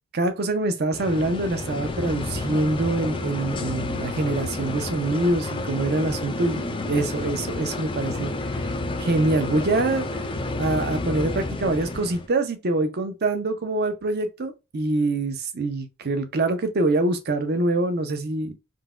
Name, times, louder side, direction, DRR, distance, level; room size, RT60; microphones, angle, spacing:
voice 1, 0.1-8.6 9.0-10.0 10.6-18.5, right 2 dB, 45° right, 0.6 m, -25 dB
sound 1, 0.9-12.3, left 2 dB, 25° left, 0.3 m, -30 dB
3.8 x 2.2 x 2.3 m
head